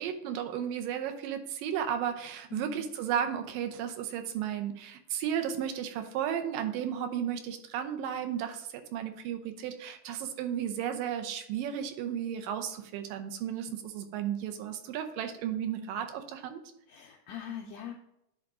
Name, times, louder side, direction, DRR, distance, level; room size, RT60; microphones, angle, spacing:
voice 1, 0.0-16.6, right 9 dB, 85° right, 6 dB, 2.4 m, -34 dB
voice 2, 2.5-2.9 16.9-17.9, left 8 dB, 85° left, 2 dB, 1.6 m, -42 dB
10.0 x 3.7 x 3.6 m, 0.81 s
omnidirectional pair, 3.9 m